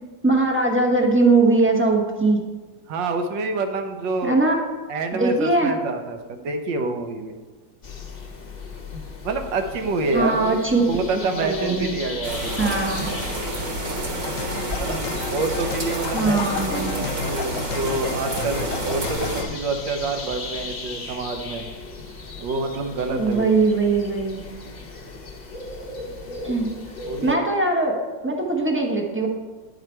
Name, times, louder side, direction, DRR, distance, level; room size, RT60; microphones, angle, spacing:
voice 1, 0.2-2.4 4.2-4.5 5.1-5.7 10.1-10.8 11.1-12.0 12.6-13.2 16.1-17.1 23.1-24.4 26.4-26.7 27.2-28.0 28.2-29.3, right 3 dB, 10° right, -1 dB, 0.6 m, -21 dB
voice 2, 2.9-4.3 4.9-7.4 9.2-10.6 10.9-12.8 14.7-16.4 16.6-21.7 22.4-23.4 26.1-26.3 27.1-27.4, right 3 dB, 75° right, 6 dB, 1.5 m, -27 dB
sound 1, 7.8-27.4, left 3 dB, 40° left, 0.6 m, -37 dB
sound 2, 12.2-19.4, right 1 dB, 50° right, 1.6 m, -29 dB
sound 3, 14.2-19.5, left 7 dB, 75° left, 1.2 m, -33 dB
10.5 x 4.8 x 4.4 m, 1.3 s
omnidirectional pair, 2.0 m